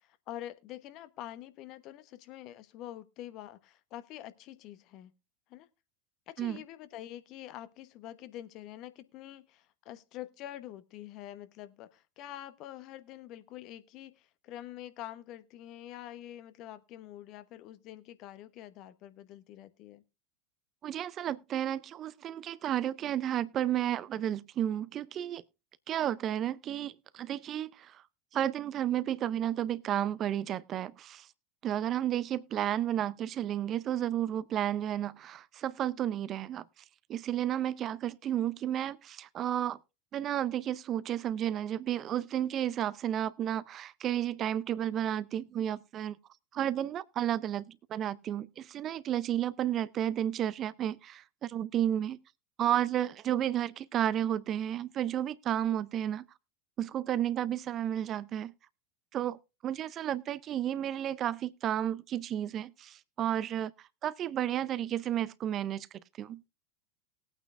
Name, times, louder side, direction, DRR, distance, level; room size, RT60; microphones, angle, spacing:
voice 1, 0.0-5.1 5.5-5.7 6.3-20.0, left 13 dB, 45° left, 1.0 m, -46 dB
voice 2, 20.8-25.4 25.9-28.0 28.3-31.3 31.6-36.6 37.1-39.8 40.1-46.2 46.5-52.2 52.6-56.3 56.8-58.5 59.1-63.7 64.0-65.9 66.2-66.4, right 11 dB, 35° right, 0.5 m, -32 dB
19.5 x 8.9 x 2.5 m
figure-of-eight pair, 85°, 0 cm